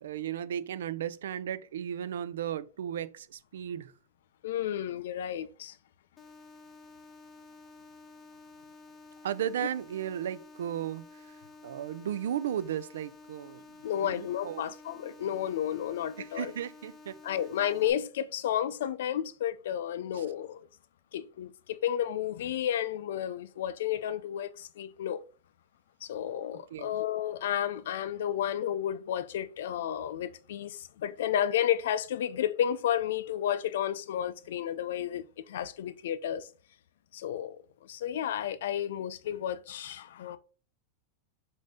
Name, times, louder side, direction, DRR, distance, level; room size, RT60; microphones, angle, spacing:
voice 1, 0.0-3.9 9.2-11.4 11.6-13.6 14.0-14.6 16.2-17.2 20.1-20.3 26.7-27.0, right 10 dB, 85° right, 0.3 m, -35 dB
voice 2, 4.4-5.7 13.8-16.5 17.2-20.6 21.1-25.2 26.0-36.5 37.1-37.6 37.9-40.4, left 10 dB, 80° left, 0.4 m, -32 dB
sound 1, 6.2-17.9, left 3 dB, 20° left, 0.8 m, -52 dB
5.3 x 2.6 x 3.6 m
supercardioid pair, 125°, 0 cm